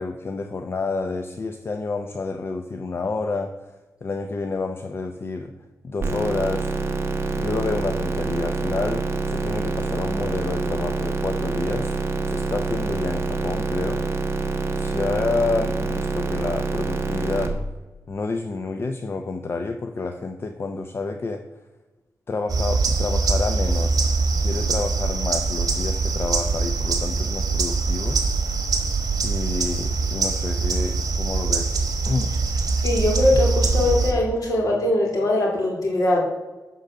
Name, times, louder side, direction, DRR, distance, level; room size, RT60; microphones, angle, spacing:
voice 1, 0.0-3.7 4.0-5.5 5.8-6.7 7.3-11.9 12.3-14.1 14.7-17.6 18.1-21.4 22.3-24.0 24.4-28.2 28.6-28.9 29.2-31.7 32.0-32.3, left 3 dB, 40° left, 6 dB, 0.5 m, -29 dB
sound 1, 6.0-17.5, right 3 dB, 40° right, 1.1 m, -26 dB
sound 2, 22.5-34.1, right 4 dB, 70° right, 1.3 m, -23 dB
voice 2, 32.8-36.2, left 1 dB, 65° left, -1 dB, 2.6 m, -21 dB
11.5 x 3.9 x 6.7 m, 1.2 s
wide cardioid pair, 160°, 6 cm